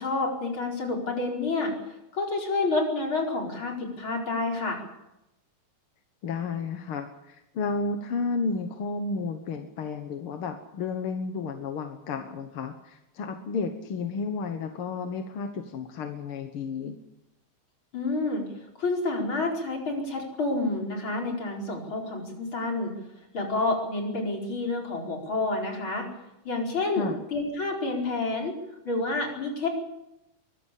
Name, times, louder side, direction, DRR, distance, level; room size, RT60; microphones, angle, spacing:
voice 1, 0.0-1.7 2.1-4.8 17.9-18.4 18.8-22.9 23.3-26.1 26.5-28.6 28.9-29.7, left 3 dB, 40° left, 0 dB, 5.4 m, -29 dB
voice 2, 6.2-17.0 27.0-27.2, left 4 dB, 55° left, 6 dB, 1.8 m, -32 dB
23.0 x 15.0 x 8.5 m, 0.91 s
omnidirectional pair, 3.6 m